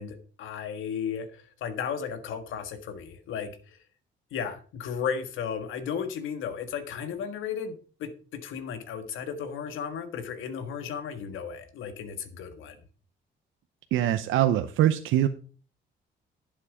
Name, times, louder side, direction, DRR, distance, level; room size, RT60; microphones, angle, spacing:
voice 1, 0.0-3.8 4.3-12.8, left 7 dB, 85° left, 9 dB, 1.6 m, -35 dB
voice 2, 13.9-15.3, right 12 dB, 85° right, 8 dB, 0.7 m, -23 dB
11.5 x 7.4 x 5.0 m, 0.39 s
cardioid pair, 90°, 20 cm